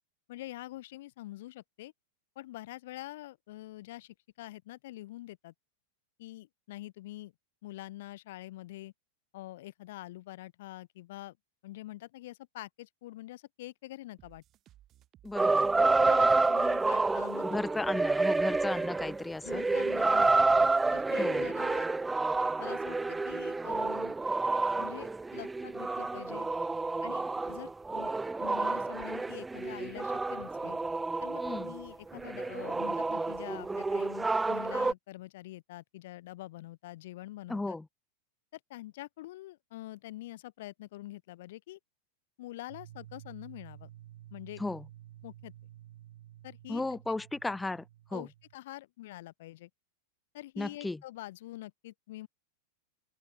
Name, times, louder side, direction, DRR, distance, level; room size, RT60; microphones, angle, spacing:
voice 1, 0.3-1.9 2.3-5.5 6.2-7.3 7.6-8.9 9.3-11.4 11.6-14.4 15.7-17.8 18.2-18.4 19.4-21.9 22.6-24.2 24.7-26.5 27.0-28.1 28.4-30.8 31.2-37.8 38.5-41.8 42.4-43.9 44.3-44.6 45.2-45.5 46.4-47.2 48.1-49.7 50.3-52.3, left 16 dB, 55° left, 1.0 m, -45 dB
sound 1, 14.2-21.8, right 13 dB, 30° right, 5.5 m, -60 dB
voice 2, 15.2-15.7 17.4-19.6 21.2-21.5 31.4-31.7 37.5-37.8 44.6-44.8 46.7-47.8 48.1-48.2 50.6-51.0, left 2 dB, 10° left, 1.1 m, -35 dB
sound 2, 15.4-31.9 32.1-34.9, right 3 dB, 10° right, 0.4 m, -29 dB
sound 3, 42.7-48.5, right 13 dB, 60° right, 4.5 m, -52 dB
open air
figure-of-eight pair, 90°, 0 cm